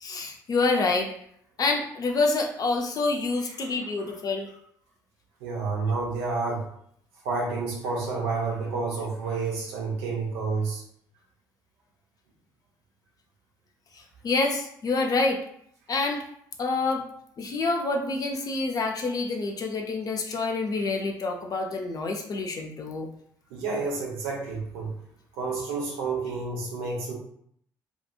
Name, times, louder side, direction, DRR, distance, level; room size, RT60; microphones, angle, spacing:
voice 1, 0.0-1.1 1.6-4.5 13.9-15.4 15.9-16.2 16.6-17.1 17.4-23.1, left 3 dB, 35° left, 2 dB, 0.5 m, -27 dB
voice 2, 5.4-6.7 7.2-10.8 23.5-25.0 25.3-27.1, right 4 dB, 65° right, -1 dB, 0.7 m, -29 dB
2.7 x 2.4 x 2.3 m, 0.67 s
figure-of-eight pair, 45°, 11 cm